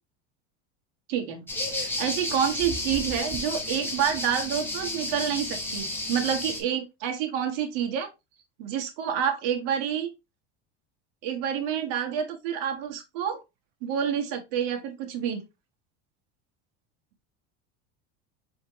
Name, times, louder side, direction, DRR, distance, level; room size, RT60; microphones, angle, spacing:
voice 1, 1.1-1.4 1.8-8.1 8.6-10.1 11.2-13.4 13.8-15.4, right 8 dB, 70° right, 1.5 m, -28 dB
sound 1, 1.5-6.6, left 2 dB, 5° left, 1.3 m, -32 dB
4.8 x 3.5 x 2.8 m
supercardioid pair, 130°, 35 cm